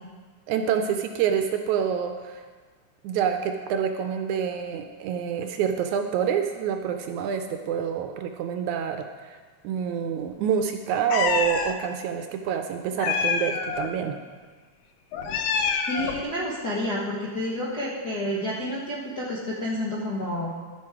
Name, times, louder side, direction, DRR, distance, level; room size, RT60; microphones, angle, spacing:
voice 1, 0.5-2.4 3.0-9.4 9.6-14.2, right 8 dB, 80° right, 6 dB, 1.8 m, -27 dB
Meow, 11.1-11.7 13.0-13.9 15.1-16.2, left 5 dB, 80° left, 1.4 m, -26 dB
voice 2, 15.9-20.5, left 1 dB, 60° left, -5 dB, 1.0 m, -29 dB
12.5 x 7.7 x 4.7 m, 1.5 s
omnidirectional pair, 3.7 m